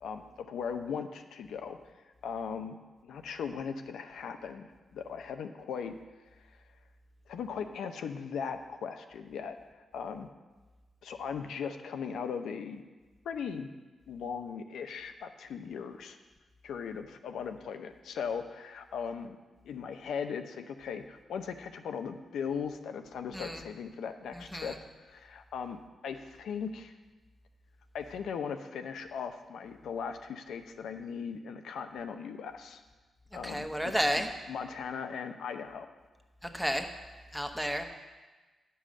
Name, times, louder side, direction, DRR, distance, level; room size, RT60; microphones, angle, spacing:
voice 1, 0.0-1.8 2.2-2.8 3.0-6.0 7.3-9.6 9.9-10.3 11.0-12.8 13.2-13.7 14.1-16.2 16.6-19.4 19.6-26.9 27.9-32.8 33.3-34.1 34.5-35.9, left 6 dB, 80° left, 7 dB, 0.7 m, -38 dB
voice 2, 24.3-24.8 33.4-34.3 36.5-36.9 37.3-37.8, equal, ahead, 4 dB, 1.1 m, -31 dB
9.7 x 5.5 x 6.3 m, 1.2 s
cardioid pair, 60°, 0 cm